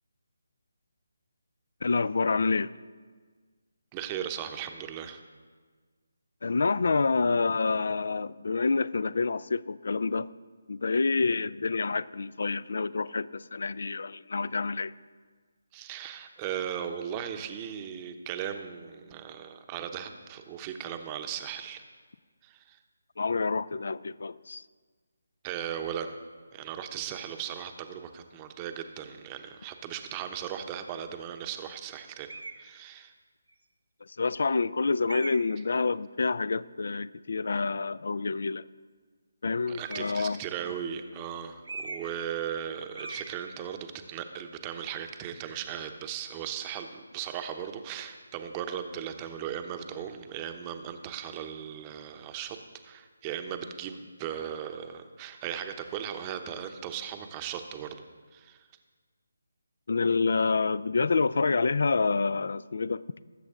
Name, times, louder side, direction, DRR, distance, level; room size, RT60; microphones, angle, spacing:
voice 1, 1.8-2.7 6.4-10.3 10.7-14.9 23.2-24.6 34.2-38.6 39.4-40.4 59.9-63.0, left 4 dB, 60° left, 20 dB, 0.4 m, -27 dB
voice 2, 3.9-5.2 15.7-21.8 22.4-22.8 25.4-26.1 26.5-33.1 39.7-52.6 52.8-58.0 58.3-58.7, right 9 dB, 20° right, 7 dB, 0.8 m, -37 dB
sound 1, 32.3-32.7 33.5-33.6 35.1-35.6 39.7-40.3 41.6-42.2 42.5-42.7 43.0-43.4, right 3 dB, 75° right, 1.2 m, -40 dB
19.5 x 7.9 x 3.7 m, 1.5 s
figure-of-eight pair, 150°, 0 cm